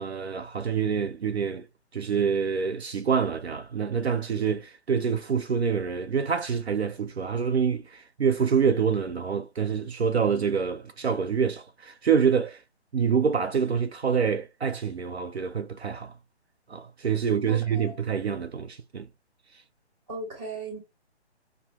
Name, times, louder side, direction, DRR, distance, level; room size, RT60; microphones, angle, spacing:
voice 1, 0.0-1.7 1.9-12.6 12.9-16.1 16.7-19.1, right 6 dB, 65° right, 0.6 m, -26 dB
voice 2, 17.5-18.0 20.1-20.8, right 3 dB, 10° right, 1.6 m, -37 dB
5.5 x 2.0 x 2.9 m
figure-of-eight pair, 140°, 34 cm